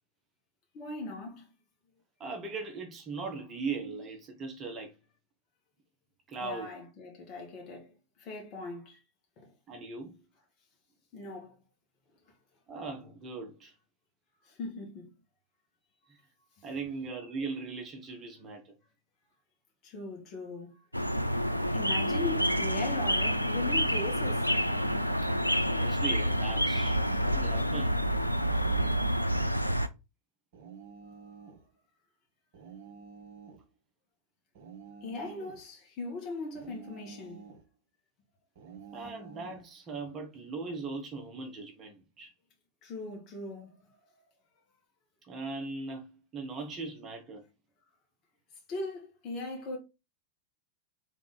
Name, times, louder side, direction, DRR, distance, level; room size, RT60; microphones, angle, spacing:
voice 1, 0.7-1.5 6.4-9.0 9.4-9.5 11.1-11.6 14.4-15.1 19.8-20.7 21.7-24.5 31.1-31.2 35.0-37.5 42.8-43.8 48.7-49.8, left 2 dB, 35° left, 1.9 m, -39 dB
voice 2, 2.2-4.9 6.3-6.7 9.7-10.2 12.7-13.7 16.1-16.2 16.6-18.7 25.6-27.0 27.3-28.0 38.9-42.3 45.2-47.4, right 4 dB, 25° right, 1.1 m, -39 dB
sound 1, 20.9-29.9, equal, 90° right, 0.3 m, -28 dB
sound 2, 26.5-27.6 28.5-29.6 30.5-31.7 32.5-33.7 34.5-35.7 36.5-37.7 38.6-39.7, right 6 dB, 50° right, 1.3 m, -50 dB
3.6 x 3.6 x 3.9 m
figure-of-eight pair, 90°, 0 cm